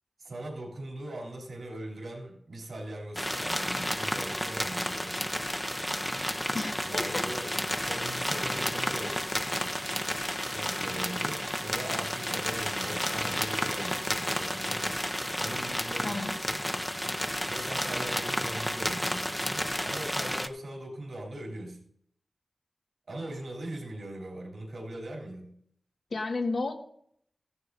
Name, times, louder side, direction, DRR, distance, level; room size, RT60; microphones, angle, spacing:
voice 1, 0.2-5.2 6.8-7.5 7.8-9.3 10.5-15.0 15.3-16.6 17.5-21.8 23.1-25.6, right 1 dB, 85° right, 3.1 m, -40 dB
sound 1, 3.2-20.5, equal, 10° left, 0.6 m, -31 dB
voice 2, 6.5-7.2 16.0-16.3 26.1-26.7, left 3 dB, 80° left, 1.6 m, -32 dB
15.0 x 11.0 x 2.7 m
wide cardioid pair, 95°, 0 cm